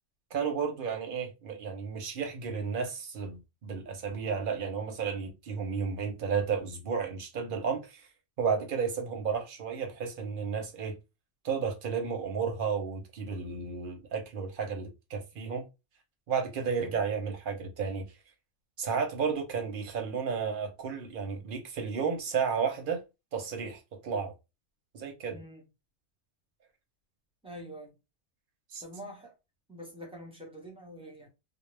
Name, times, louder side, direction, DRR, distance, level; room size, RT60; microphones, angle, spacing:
voice 1, 0.3-8.1 8.4-11.0 11.4-15.6 16.3-18.0 18.8-23.0 23.3-24.3 24.9-25.4 28.7-28.8, right 6 dB, 55° right, 0.7 m, -32 dB
voice 2, 25.3-25.6 27.4-27.9 28.8-29.3 29.7-31.3, equal, 5° right, 0.7 m, -46 dB
2.3 x 2.0 x 3.1 m
omnidirectional pair, 1.3 m